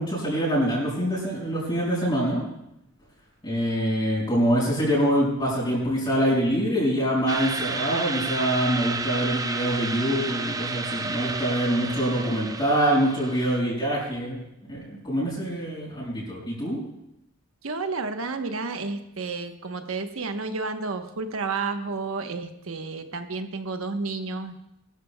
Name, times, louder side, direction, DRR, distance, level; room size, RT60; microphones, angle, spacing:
voice 1, 0.0-2.4 3.4-14.4 14.7-16.8, equal, 25° left, -7 dB, 5.3 m, -25 dB
sound 1, 7.3-13.6, right 3 dB, 15° right, 0.5 m, -31 dB
voice 2, 17.6-24.6, right 3 dB, 80° right, 7 dB, 1.0 m, -31 dB
21.5 x 13.0 x 2.2 m, 0.84 s
head